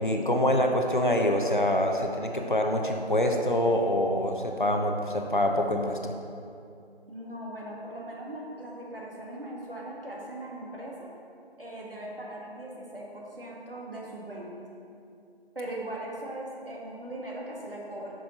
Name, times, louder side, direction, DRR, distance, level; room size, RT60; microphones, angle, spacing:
voice 1, 0.0-6.1, left 1 dB, 50° left, 3 dB, 0.8 m, -25 dB
voice 2, 7.1-11.1 11.6-14.5 15.6-18.1, right 1 dB, 60° right, -3 dB, 1.9 m, -39 dB
7.8 x 6.4 x 4.2 m, 2.5 s
figure-of-eight pair, 175°, 32 cm